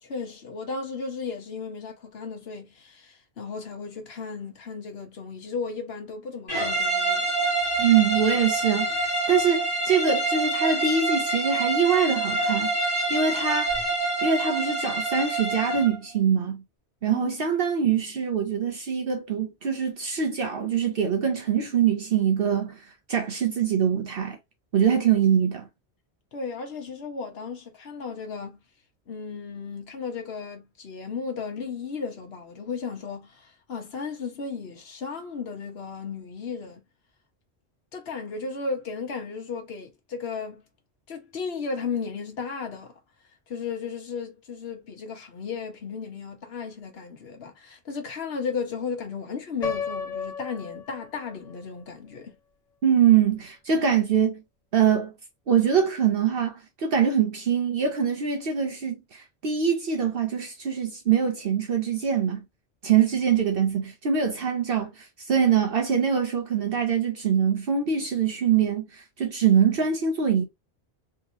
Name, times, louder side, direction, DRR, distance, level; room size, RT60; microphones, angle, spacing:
voice 1, 0.0-7.3 17.1-17.3 26.3-28.6 29.1-36.8 37.9-40.6 41.1-43.0 43.5-52.4, left 5 dB, 70° left, 1.2 m, -35 dB
sound 1, 6.5-15.9, right 2 dB, 20° left, 1.4 m, -26 dB
voice 2, 7.8-12.7 13.1-13.7 14.2-16.6 17.0-24.4 24.7-25.7 52.8-54.4 54.7-55.1 55.5-62.4 62.8-70.4, right 7 dB, 60° right, 0.9 m, -23 dB
Piano, 49.6-51.6, left 5 dB, 40° left, 0.9 m, -33 dB
3.6 x 2.9 x 2.7 m
omnidirectional pair, 1.1 m